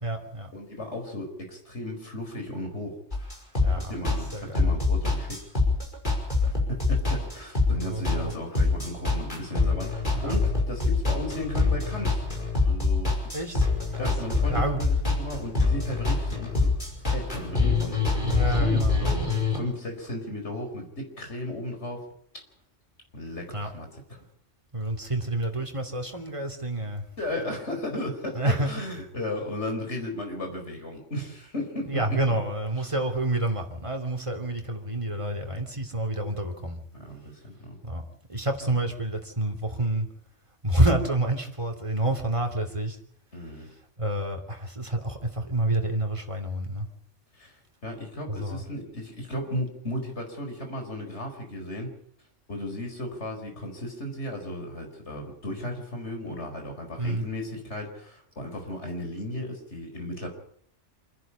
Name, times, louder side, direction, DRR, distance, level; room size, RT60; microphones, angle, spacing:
voice 1, 0.0-0.5 3.6-3.9 4.3-4.7 7.6-8.3 10.1-10.4 13.3-14.1 14.4-14.8 18.2-19.0 23.5-23.7 24.7-27.0 28.3-28.7 31.9-36.8 37.8-38.0 38.3-40.1 40.6-43.0 43.6-46.9 48.3-48.6 57.0-57.3, right 1 dB, 25° right, 3 dB, 3.0 m, -28 dB
voice 2, 0.5-3.0 3.7-5.4 6.4-12.2 12.6-13.1 14.0-16.7 17.0-19.2 19.5-22.1 23.1-24.2 27.2-32.0 36.9-37.8 43.3-43.7 47.3-47.5 47.8-51.9 52.5-60.3, left 1 dB, 65° left, 3 dB, 5.1 m, -35 dB
sound 1, 3.1-19.6, left 3 dB, 40° left, 5.6 m, -25 dB
27.5 x 11.0 x 8.6 m, 0.65 s
omnidirectional pair, 1.2 m